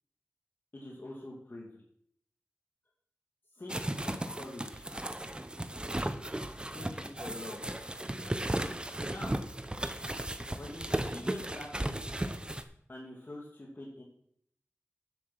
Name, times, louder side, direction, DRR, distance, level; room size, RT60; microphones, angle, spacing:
voice 1, 0.7-1.7 3.6-4.8 6.7-7.7 9.1-9.4 10.6-12.1 12.9-14.0, left 1 dB, 45° left, -3 dB, 2.5 m, -45 dB
sound 1, 3.7-12.6, right 1 dB, 20° right, 0.8 m, -35 dB
9.8 x 7.7 x 6.1 m, 0.68 s
wide cardioid pair, 80°, 5 cm